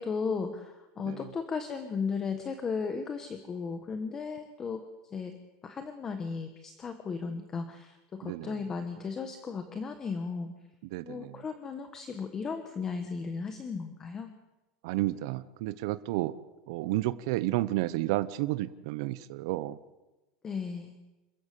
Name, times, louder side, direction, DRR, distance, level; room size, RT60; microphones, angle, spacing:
voice 1, 0.0-4.8 5.1-5.3 5.6-10.5 11.0-14.3 20.4-21.0, left 5 dB, 15° left, 8 dB, 1.3 m, -35 dB
voice 2, 8.2-8.5 10.8-11.4 14.8-16.3 16.7-19.8, right 16 dB, 55° right, 14 dB, 0.8 m, -31 dB
27.5 x 14.5 x 8.4 m, 1.1 s
supercardioid pair, 175°, 3 cm